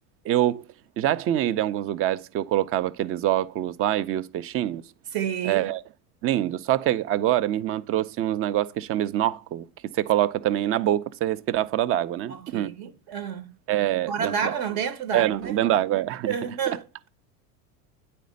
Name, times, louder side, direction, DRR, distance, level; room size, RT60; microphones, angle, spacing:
voice 1, 0.2-0.6 1.0-4.8 5.4-5.8 6.2-9.6 9.9-12.7 13.7-14.5 15.1-16.3, right 13 dB, 30° right, 0.5 m, -25 dB
voice 2, 5.1-5.6 12.3-13.5 14.1-15.5 16.3-16.8, right 7 dB, 50° right, 1.0 m, -29 dB
9.2 x 4.3 x 5.2 m
hypercardioid pair, 95°, 45 cm